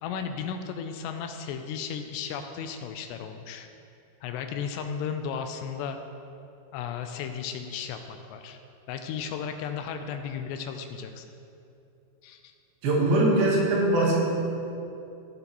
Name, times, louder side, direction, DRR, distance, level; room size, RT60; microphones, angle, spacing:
voice 1, 0.0-3.7 4.2-6.0 6.7-8.6 8.9-11.3 12.2-12.5, left 7 dB, 85° left, 7 dB, 2.6 m, -35 dB
voice 2, 12.8-14.2, right 2 dB, 65° right, -4 dB, 3.0 m, -22 dB
16.5 x 7.8 x 3.0 m, 2.7 s
omnidirectional pair, 5.1 m